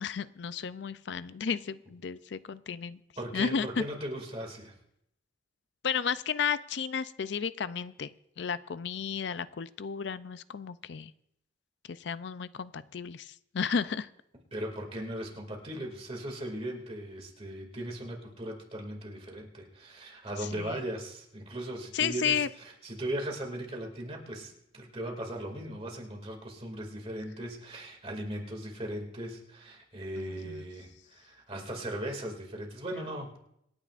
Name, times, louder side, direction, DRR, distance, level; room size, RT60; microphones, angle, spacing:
voice 1, 0.0-3.0 3.3-3.7 5.8-8.1 8.4-11.1 11.9-14.1 20.4-20.8 21.9-22.5 30.2-30.6, left 6 dB, 65° left, 15 dB, 0.4 m, -33 dB
voice 2, 3.2-4.7 14.5-33.4, right 1 dB, 30° right, 1 dB, 2.4 m, -38 dB
26.5 x 9.7 x 2.5 m, 0.76 s
head